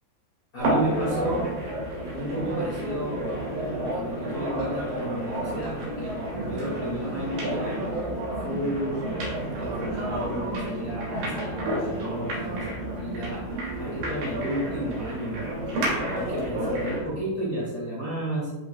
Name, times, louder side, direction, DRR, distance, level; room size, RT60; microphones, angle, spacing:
voice 1, 0.5-1.5 2.1-3.4 3.9-7.8 8.4-9.1 9.6-12.7 13.0-15.5 16.1-18.5, right 1 dB, 75° left, -9 dB, 1.0 m, -32 dB
sound 1, 0.6-17.1, right 1 dB, 50° right, 3.3 m, -30 dB
sound 2, 6.4-14.3, right 2 dB, 85° right, 4.0 m, -40 dB
11.5 x 4.9 x 2.3 m, 1.2 s
omnidirectional pair, 6.0 m